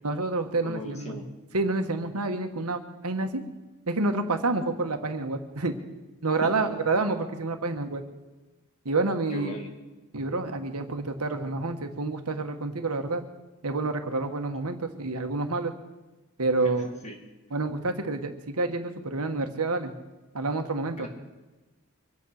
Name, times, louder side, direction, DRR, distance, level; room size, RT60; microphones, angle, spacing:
voice 1, 0.0-1.2 1.5-3.4 3.9-5.8 6.2-8.0 8.8-9.5 10.1-13.2 13.6-15.7 16.4-16.9 17.5-19.9 20.3-21.1, right 3 dB, 85° right, 6 dB, 1.5 m, -28 dB
voice 2, 0.6-1.3 6.4-6.7 9.3-9.7 16.6-17.2 21.0-21.1, equal, 30° left, 2 dB, 2.4 m, -39 dB
24.0 x 8.7 x 6.5 m, 1.1 s
head